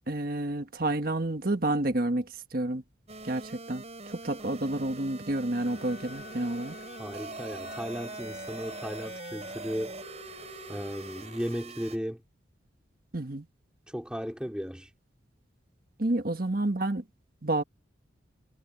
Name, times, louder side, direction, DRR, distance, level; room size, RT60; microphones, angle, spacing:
voice 1, 0.1-2.3 2.5-2.8 3.2-6.7 13.1-13.4 16.0-17.0 17.4-17.6, right 1 dB, 50° right, 1.5 m, -29 dB
sound 1, 3.1-12.0, right 3 dB, 35° right, 6.2 m, -43 dB
Wind instrument woodwind instrument, 5.6-11.7, left 4 dB, 50° left, 7.4 m, -49 dB
voice 2, 7.0-10.0 10.7-12.2 13.9-14.9, equal, 5° right, 4.2 m, -35 dB
head